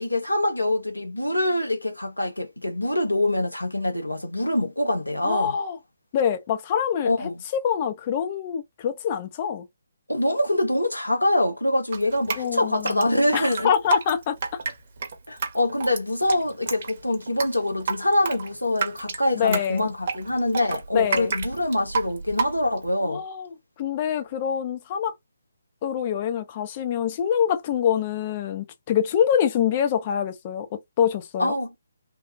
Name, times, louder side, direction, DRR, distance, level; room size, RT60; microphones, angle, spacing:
voice 1, 0.0-5.5 7.0-7.4 10.1-13.7 15.3-23.2 31.4-31.7, left 1 dB, 85° left, 1.2 m, -25 dB
voice 2, 5.2-5.8 6.1-9.7 12.4-14.3 19.3-19.8 20.9-21.3 23.1-23.5 23.8-25.1 25.8-30.7 31.0-31.5, left 8 dB, 30° left, 0.6 m, -25 dB
Drip, 11.9-22.9, right 5 dB, 40° right, 0.9 m, -30 dB
3.4 x 2.2 x 2.5 m
figure-of-eight pair, 140°, 0 cm